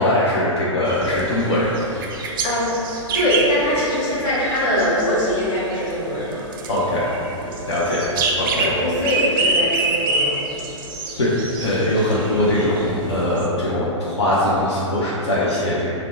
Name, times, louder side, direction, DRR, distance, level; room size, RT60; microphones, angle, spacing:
voice 1, 0.0-1.7 6.7-7.1 7.7-8.1 8.4-8.7 11.2-11.3 11.6-16.0, left 1 dB, 60° left, -7 dB, 0.7 m, -21 dB
sound 1, 0.8-13.5, right 3 dB, 40° right, 0.5 m, -27 dB
voice 2, 2.4-6.4 7.4-7.6 8.6-10.3 10.6-10.7, left 1 dB, 30° left, -7 dB, 1.1 m, -22 dB
3.9 x 2.1 x 4.3 m, 3.0 s
figure-of-eight pair, 110°, 16 cm